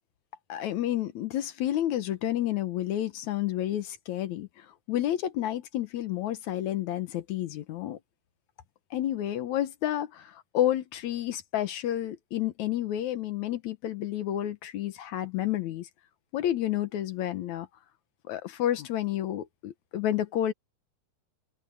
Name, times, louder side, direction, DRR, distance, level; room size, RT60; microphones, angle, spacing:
voice 1, 0.5-8.0 8.9-15.9 16.3-17.7 18.3-20.5, left 12 dB, 70° left, 1.9 m, -30 dB
omnidirectional pair, 4.3 m